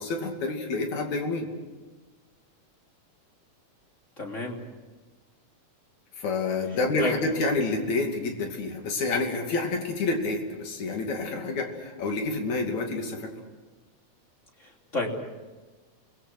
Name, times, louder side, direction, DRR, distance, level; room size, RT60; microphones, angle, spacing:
voice 1, 0.0-1.5 6.2-13.4, left 3 dB, 75° left, 3 dB, 3.9 m, -28 dB
voice 2, 4.2-4.6 7.0-7.1 14.6-15.3, left 2 dB, 25° left, 0 dB, 3.3 m, -31 dB
29.0 x 21.0 x 6.2 m, 1.3 s
omnidirectional pair, 3.3 m